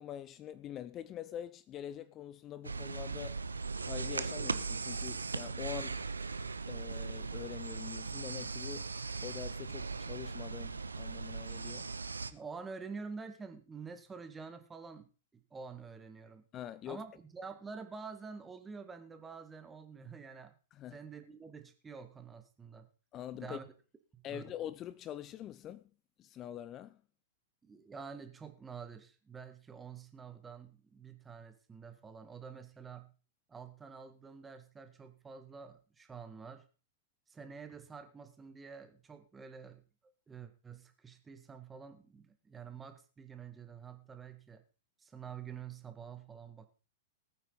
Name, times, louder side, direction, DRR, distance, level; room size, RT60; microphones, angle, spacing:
voice 1, 0.0-3.4 3.8-6.0 6.7-8.9 9.2-11.9 16.5-17.0 20.7-21.0 23.1-23.6 24.2-25.9 26.2-27.0, left 11 dB, 30° left, 0.6 m, -44 dB
sound 1, 2.6-12.3, right 4 dB, 80° right, 0.8 m, -39 dB
voice 2, 12.3-16.4 16.9-20.5 20.9-22.9 23.3-23.7 24.1-24.5 27.6-33.1 33.5-36.7 37.3-44.6 45.0-46.7, right 5 dB, 15° right, 1.9 m, -48 dB
19.5 x 9.1 x 4.0 m
figure-of-eight pair, 100°, 0 cm